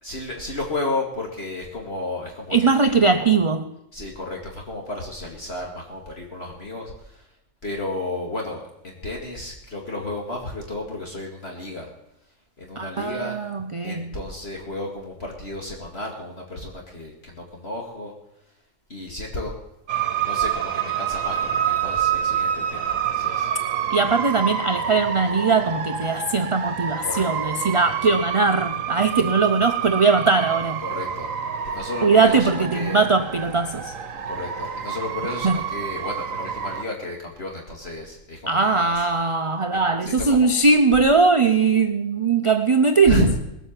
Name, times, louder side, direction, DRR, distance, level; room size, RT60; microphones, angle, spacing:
voice 1, 0.0-3.4 3.9-7.3 7.6-11.9 12.6-13.4 13.8-18.1 18.9-19.6 20.2-23.5 27.0-27.3 30.8-31.3 31.7-33.1 34.3-39.0 39.7-40.7 43.0-43.4, left 2 dB, 50° left, 0 dB, 2.5 m, -32 dB
voice 2, 2.5-3.6 12.8-14.1 23.9-30.8 32.0-33.9 35.4-35.6 38.5-43.3, right 4 dB, 35° right, 8 dB, 0.6 m, -20 dB
sound 1, 19.9-36.8, right 9 dB, 75° right, 1.4 m, -28 dB
20.0 x 8.2 x 7.5 m, 0.86 s
omnidirectional pair, 1.4 m